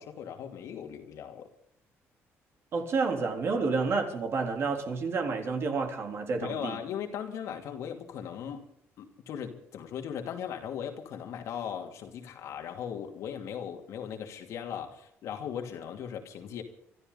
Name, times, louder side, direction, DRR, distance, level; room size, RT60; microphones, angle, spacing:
voice 1, 0.0-1.5 6.4-8.6 9.0-16.6, left 8 dB, 75° left, 2.6 m, -38 dB
voice 2, 2.7-6.8, right 4 dB, 50° right, 3.7 m, -29 dB
26.0 x 13.0 x 4.0 m
cardioid pair, 90°, 5 cm